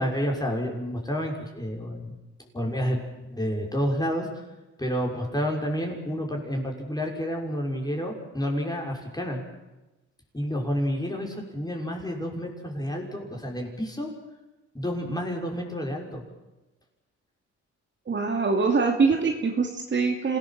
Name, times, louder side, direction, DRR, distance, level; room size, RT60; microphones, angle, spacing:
voice 1, 0.0-2.1 2.5-3.0 3.3-4.3 4.8-9.4 10.3-14.1 14.7-16.2, equal, 15° left, 1 dB, 6.2 m, -29 dB
voice 2, 18.1-20.4, right 4 dB, 40° right, 3 dB, 2.7 m, -23 dB
27.0 x 18.0 x 7.7 m, 1.0 s
cardioid pair, 90°, 30 cm